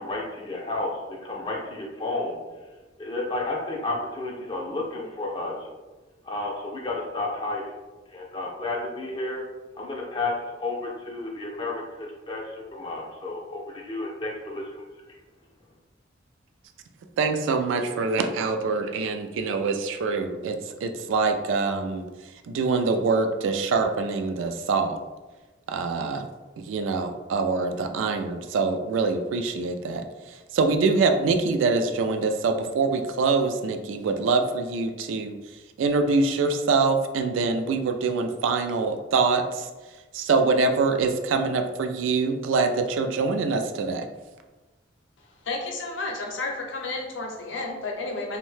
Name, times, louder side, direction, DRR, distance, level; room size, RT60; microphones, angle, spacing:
voice 1, 0.0-2.4 3.0-5.7 6.2-7.7 8.1-9.4 9.7-14.8, left 2 dB, 25° left, -2 dB, 0.3 m, -32 dB
voice 2, 17.2-25.0 25.7-26.3 26.6-39.7 40.1-44.1, right 4 dB, 85° right, 7 dB, 0.3 m, -25 dB
voice 3, 45.4-48.4, left 3 dB, 80° left, 1 dB, 0.6 m, -31 dB
2.6 x 2.1 x 3.1 m, 1.2 s
head